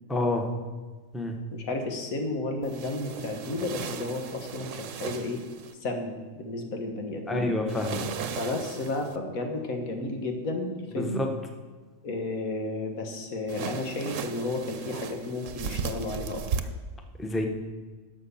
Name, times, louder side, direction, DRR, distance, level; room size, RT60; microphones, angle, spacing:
voice 1, 0.1-0.4 1.1-1.4 7.3-8.1 11.0-11.3 17.2-17.5, left 1 dB, ahead, 4 dB, 0.8 m, -28 dB
voice 2, 1.5-5.4 5.7-7.5 8.4-11.2 12.0-16.4, left 2 dB, 85° left, 4 dB, 1.8 m, -32 dB
sound 1, 2.6-5.7 7.7-9.2 13.5-16.6, right 6 dB, 70° right, 1.1 m, -36 dB
11.0 x 6.4 x 7.0 m, 1.4 s
omnidirectional pair, 1.4 m